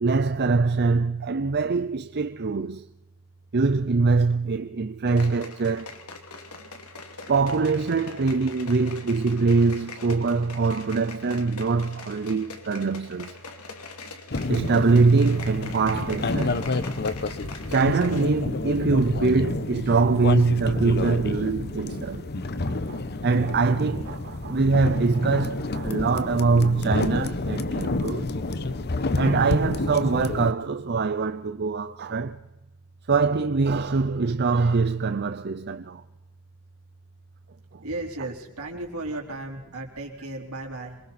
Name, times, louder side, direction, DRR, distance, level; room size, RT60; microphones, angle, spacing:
voice 1, 0.0-2.9 3.5-5.9 7.3-13.3 14.5-16.6 17.7-22.3 22.7-28.3 29.1-32.4 33.1-36.0 37.7-37.8, right 4 dB, 50° right, 0.7 m, -23 dB
sound 1, 5.1-18.4 18.6-18.7, left 4 dB, 80° left, 2.7 m, -42 dB
sound 2, 14.3-30.5, left 2 dB, 50° left, 1.0 m, -29 dB
voice 2, 37.8-41.0, right 2 dB, 75° right, 4.3 m, -35 dB
27.0 x 23.0 x 4.4 m
head